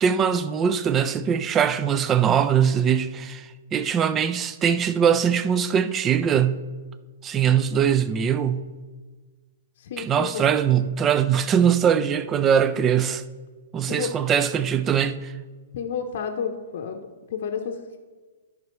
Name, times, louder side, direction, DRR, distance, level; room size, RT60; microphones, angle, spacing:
voice 1, 0.0-6.7 7.2-8.7 10.0-13.2 13.7-15.3, right 8 dB, 25° right, 0.5 m, -22 dB
voice 2, 9.8-10.4 13.9-14.1 15.7-18.0, left 6 dB, 60° left, 0.7 m, -31 dB
13.5 x 5.3 x 3.1 m
hypercardioid pair, 115°, 0 cm